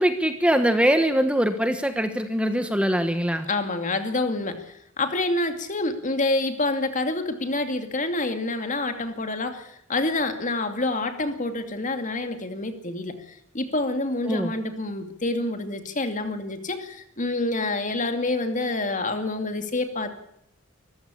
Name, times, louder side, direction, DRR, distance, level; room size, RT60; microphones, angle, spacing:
voice 1, 0.0-3.5 14.3-14.5, equal, 5° right, 8 dB, 1.2 m, -22 dB
voice 2, 3.5-20.1, left 2 dB, 35° left, 8 dB, 2.5 m, -27 dB
24.0 x 15.0 x 8.6 m, 0.74 s
head